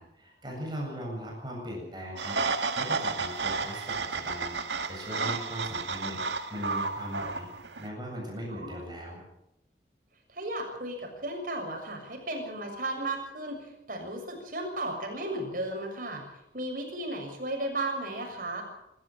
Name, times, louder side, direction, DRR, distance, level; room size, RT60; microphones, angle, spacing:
voice 1, 0.0-7.5 7.8-9.2, equal, 25° right, -2 dB, 7.8 m, -39 dB
sound 1, 2.2-7.9, right 4 dB, 85° right, 1.9 m, -32 dB
voice 2, 10.3-16.2 16.5-18.6, right 1 dB, 50° right, 3 dB, 6.8 m, -35 dB
26.0 x 14.0 x 8.8 m, 0.84 s
head